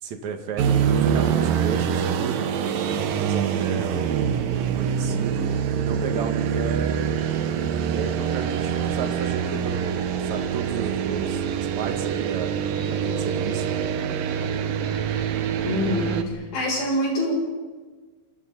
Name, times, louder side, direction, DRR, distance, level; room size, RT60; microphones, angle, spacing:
voice 1, 0.0-7.0 7.9-12.5 12.9-13.8, right 5 dB, 50° right, 4 dB, 2.5 m, -33 dB
sound 1, 0.6-16.2, right 8 dB, 70° right, 2.1 m, -25 dB
voice 2, 15.6-17.3, left 1 dB, 50° left, -2 dB, 9.1 m, -25 dB
27.5 x 27.5 x 4.2 m, 1.4 s
omnidirectional pair, 5.5 m